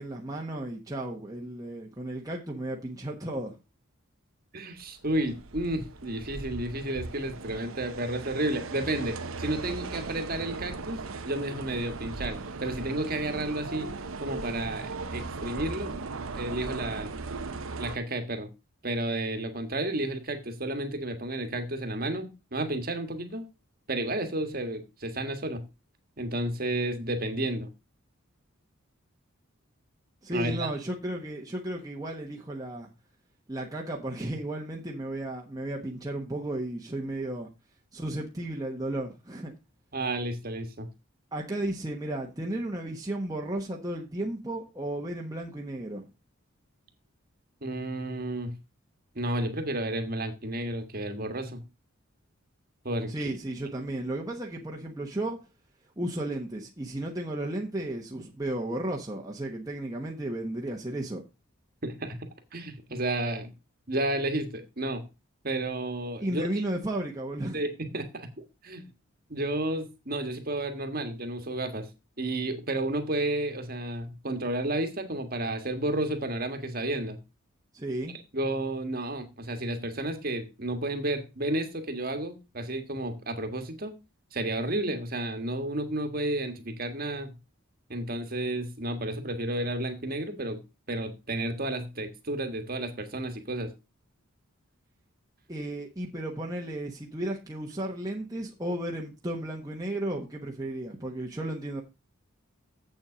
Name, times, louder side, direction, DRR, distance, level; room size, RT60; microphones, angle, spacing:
voice 1, 0.0-3.6 30.2-32.9 33.5-37.5 37.9-39.5 41.3-46.1 53.1-55.4 56.0-61.2 66.2-67.6 77.7-78.1 95.5-101.8, right 1 dB, 15° right, 1.1 m, -34 dB
voice 2, 4.5-13.9 14.2-16.1 16.3-17.1 17.8-18.5 18.8-23.5 23.9-25.6 26.2-27.7 30.3-30.7 39.9-40.9 47.6-48.5 49.1-51.6 52.8-53.1 61.8-63.5 63.9-65.0 65.4-66.6 67.5-68.3 68.6-68.9 69.3-71.9 72.2-77.2 78.3-83.9 84.3-87.3 87.9-90.6 90.9-93.7, right 1 dB, 45° right, 1.5 m, -32 dB
sound 1, 4.8-18.0, right 3 dB, 75° right, 0.9 m, -38 dB
7.8 x 7.1 x 5.0 m
head